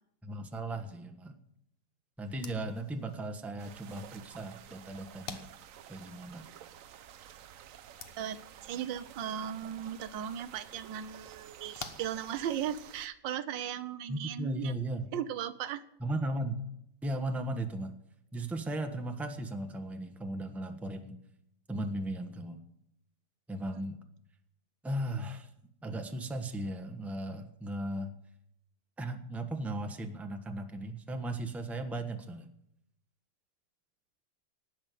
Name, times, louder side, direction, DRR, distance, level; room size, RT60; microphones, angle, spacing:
voice 1, 0.2-1.4 2.2-5.4 5.9-6.5 14.1-15.1 16.0-16.6 17.0-17.9 18.3-21.2 21.7-22.6 23.5-24.0 24.8-25.5 25.8-28.1 29.0-32.5, right 1 dB, ahead, 6 dB, 0.9 m, -36 dB
sound 1, 2.3-12.9, left 4 dB, 40° left, 1.1 m, -52 dB
sound 2, 3.6-13.1, right 10 dB, 65° right, 0.9 m, -52 dB
voice 2, 8.2-14.7 15.1-15.8, right 10 dB, 90° right, 13 dB, 1.5 m, -37 dB
18.5 x 6.3 x 9.2 m, 0.78 s
omnidirectional pair, 2.0 m